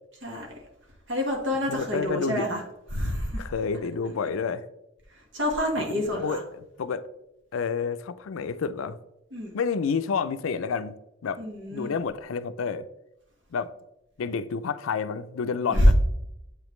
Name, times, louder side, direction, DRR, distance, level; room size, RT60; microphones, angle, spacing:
voice 1, 1.1-2.6 2.9-3.5 5.3-6.4 9.3-9.5 11.4-11.9 15.7-15.9, equal, 60° right, 1.5 m, -25 dB
voice 2, 1.7-2.7 3.4-4.7 5.8-7.0 7.5-9.0 9.5-11.0 11.2-11.4 11.7-12.9 13.5-13.7 14.2-15.9, left 5 dB, 85° left, 0.4 m, -29 dB
7.8 x 5.0 x 3.1 m
head